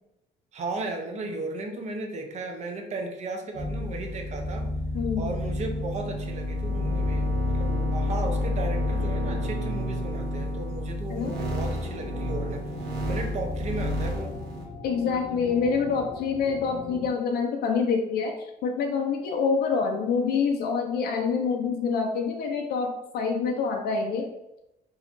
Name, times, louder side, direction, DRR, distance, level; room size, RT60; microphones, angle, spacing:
voice 1, 0.5-4.7 5.2-12.7 13.0-14.4, right 2 dB, 40° right, 3 dB, 0.7 m, -35 dB
sound 1, 3.5-14.6, left 1 dB, 75° right, 0.9 m, -29 dB
voice 2, 4.9-5.3 11.1-11.5 14.8-24.3, left 5 dB, 70° left, 3 dB, 0.5 m, -26 dB
sound 2, 11.3-17.1, left 3 dB, 30° left, 0.8 m, -41 dB
3.8 x 2.9 x 2.5 m, 0.90 s
cardioid pair, 110°, 17 cm